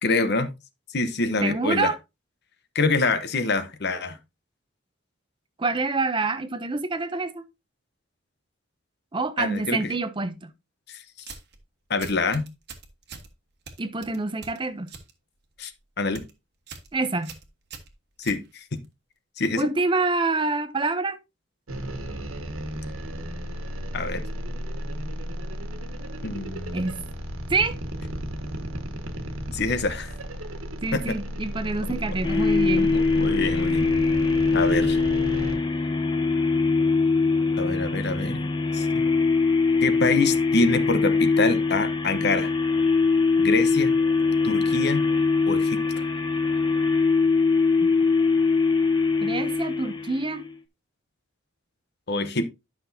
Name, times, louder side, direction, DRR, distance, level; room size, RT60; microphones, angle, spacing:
voice 1, 0.0-0.5 0.9-1.9 2.7-4.2 9.4-9.9 10.9-11.0 11.9-12.5 15.6-15.7 16.0-16.2 18.2-18.8 19.4-19.7 23.9-24.2 26.2-26.8 29.5-30.1 30.9-31.2 31.9-32.0 32.8-33.9 34.5-35.0 37.6-39.1 39.8-42.5 43.4-43.9 44.4-45.1 45.5-45.8 52.1-52.4, left 3 dB, 50° left, 0.9 m, -26 dB
voice 2, 1.4-2.0 5.6-7.4 9.1-10.5 13.8-14.9 16.9-17.4 19.6-21.2 26.7-27.0 27.5-27.8 30.8-32.9 47.8-47.9 49.2-50.5, right 3 dB, 25° right, 0.5 m, -26 dB
sound 1, 11.2-11.6 12.0-13.3 13.7-15.1 15.4-15.7 16.0-16.3 16.7-16.9 17.2-18.9, right 5 dB, 50° right, 1.3 m, -43 dB
sound 2, 21.7-35.6, equal, 80° right, 1.6 m, -34 dB
sound 3, 32.2-50.5, left 4 dB, 20° left, 0.8 m, -22 dB
11.0 x 5.9 x 2.7 m
head